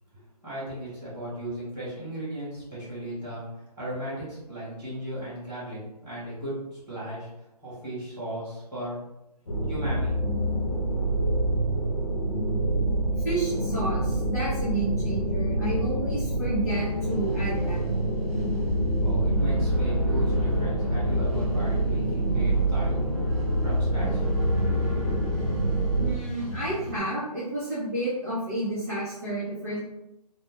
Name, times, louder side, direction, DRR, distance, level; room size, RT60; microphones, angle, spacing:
voice 1, 0.1-7.3 7.6-9.0 9.7-10.2 19.0-23.1 23.6-24.2, right 1 dB, 5° right, -18 dB, 1.2 m, -36 dB
sound 1, 9.5-26.1, right 1 dB, 50° left, 0.7 m, -26 dB
voice 2, 13.2-17.8 26.0-29.8, right 2 dB, 25° right, -12 dB, 0.6 m, -30 dB
sound 2, 16.7-27.0, left 1 dB, 40° right, 1.1 m, -36 dB
2.5 x 2.1 x 3.6 m, 0.90 s
hypercardioid pair, 175°, 21 cm